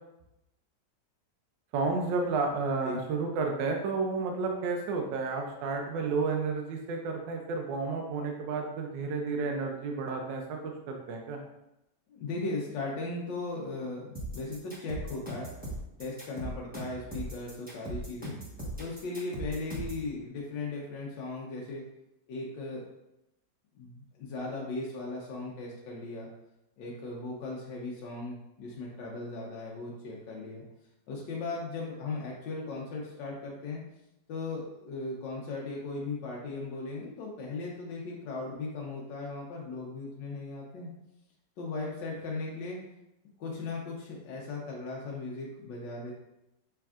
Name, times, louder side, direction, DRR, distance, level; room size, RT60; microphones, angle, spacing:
voice 1, 1.7-11.4, right 4 dB, 80° right, 2 dB, 1.3 m, -31 dB
voice 2, 12.1-15.5 16.0-18.4 18.8-21.8 22.3-22.8 23.8-26.3 26.8-30.6 31.1-33.8 34.3-40.9 41.6-42.8 43.4-46.1, left 3 dB, 80° left, -3 dB, 1.4 m, -37 dB
sound 1, 14.1-20.0, right 1 dB, 5° right, 0.8 m, -38 dB
5.9 x 3.4 x 2.4 m, 0.88 s
omnidirectional pair, 2.0 m